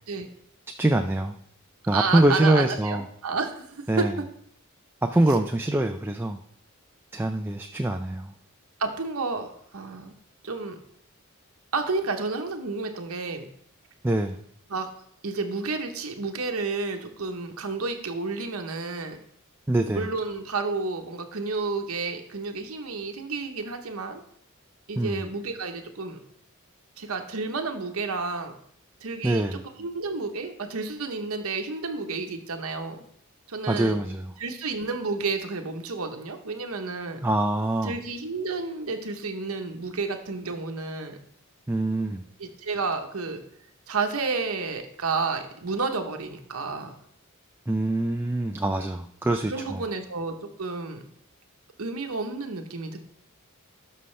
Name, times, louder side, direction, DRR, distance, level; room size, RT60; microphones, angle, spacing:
voice 1, 0.8-1.3 1.9-3.0 3.9-4.1 5.1-6.4 7.1-8.3 14.0-14.4 19.7-20.1 25.0-25.3 29.2-29.6 33.7-34.3 37.2-38.0 41.7-42.2 47.7-49.8, right 1 dB, 10° right, 5 dB, 0.3 m, -24 dB
voice 2, 1.9-4.2 8.8-9.5 9.7-10.1 10.4-10.8 11.7-13.5 14.7-14.9 15.2-19.2 19.9-24.2 24.9-26.2 27.0-28.6 29.0-33.0 33.5-34.0 34.4-37.2 37.8-41.2 42.4-43.4 43.9-46.9 49.5-51.0 51.8-53.0, right 4 dB, 80° right, 5 dB, 1.0 m, -31 dB
12.5 x 5.6 x 3.3 m, 0.66 s
head